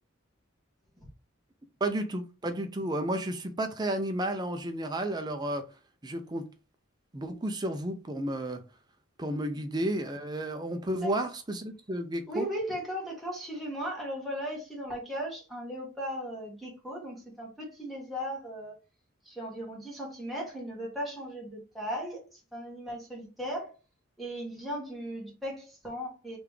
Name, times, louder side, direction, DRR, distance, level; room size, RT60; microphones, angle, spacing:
voice 1, 1.8-5.6 6.0-6.5 7.1-8.6 9.2-12.5, right 1 dB, 20° right, 0.6 m, -32 dB
voice 2, 12.3-18.7 19.2-23.7 24.2-26.4, equal, ahead, 1.4 m, -37 dB
3.9 x 3.4 x 3.3 m
head